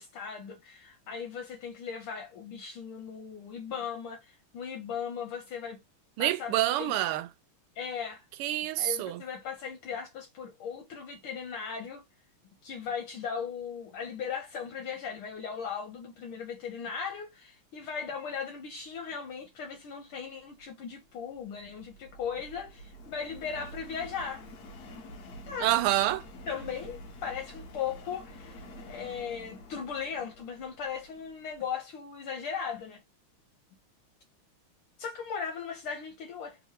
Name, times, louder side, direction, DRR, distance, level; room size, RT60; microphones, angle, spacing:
voice 1, 0.0-5.8 6.2-6.9 7.7-8.3 8.8-12.0 12.6-24.4 25.5-25.7 26.5-33.0 35.0-36.6, left 6 dB, 75° left, 1.6 m, -38 dB
voice 2, 6.2-7.3 8.4-9.2 25.6-26.2, right 14 dB, 90° right, 1.5 m, -27 dB
Subway metro underground, 20.4-31.7, equal, 55° left, 1.3 m, -48 dB
3.6 x 2.9 x 2.9 m
omnidirectional pair, 2.4 m